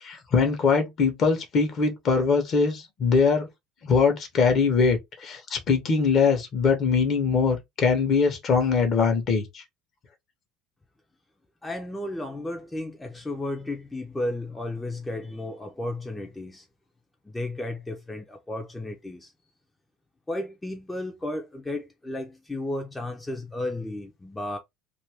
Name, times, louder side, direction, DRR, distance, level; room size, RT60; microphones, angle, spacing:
voice 1, 0.0-3.5 3.8-9.6, left 5 dB, 40° left, 1.0 m, -22 dB
voice 2, 11.6-16.7 17.2-19.3 20.3-24.6, left 1 dB, 10° left, 0.6 m, -33 dB
2.6 x 2.5 x 3.4 m
figure-of-eight pair, 65°, 0 cm